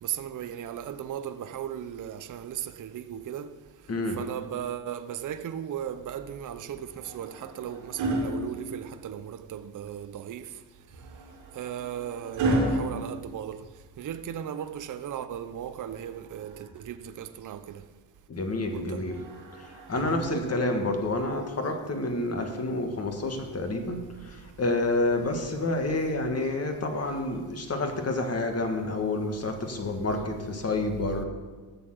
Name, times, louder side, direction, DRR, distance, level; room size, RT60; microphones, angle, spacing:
voice 1, 0.0-3.6 4.1-10.5 11.5-13.7 14.0-17.8 18.7-19.1, right 10 dB, 45° right, 0.7 m, -36 dB
voice 2, 3.9-4.2 18.3-19.2 19.5-31.3, left 2 dB, 35° left, 1.7 m, -29 dB
sound 1, 6.8-9.3 10.9-14.1 15.8-17.0 19.0-20.8 22.0-22.2, right 1 dB, 85° right, 2.4 m, -33 dB
8.6 x 6.7 x 7.6 m
cardioid pair, 95°, 43 cm